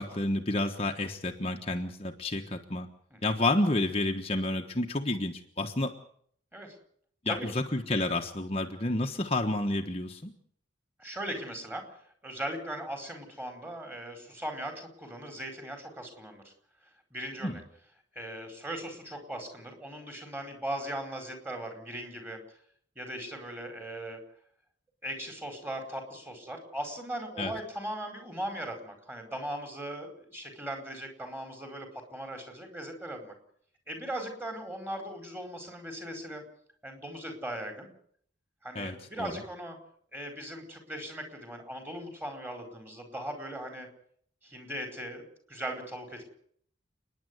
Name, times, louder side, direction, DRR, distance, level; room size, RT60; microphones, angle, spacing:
voice 1, 0.0-2.9 3.2-5.9 7.2-10.3 17.4-17.6 27.4-27.5 38.7-39.3, left 2 dB, 30° left, 3 dB, 1.3 m, -30 dB
voice 2, 11.0-11.8 12.2-16.5 17.1-17.6 18.1-22.4 23.0-24.2 25.0-33.3 33.9-36.4 36.8-37.9 38.6-39.8 40.1-43.9 44.4-45.2 45.5-46.2, right 1 dB, 10° right, 4 dB, 4.7 m, -39 dB
30.0 x 10.5 x 9.5 m, 0.64 s
head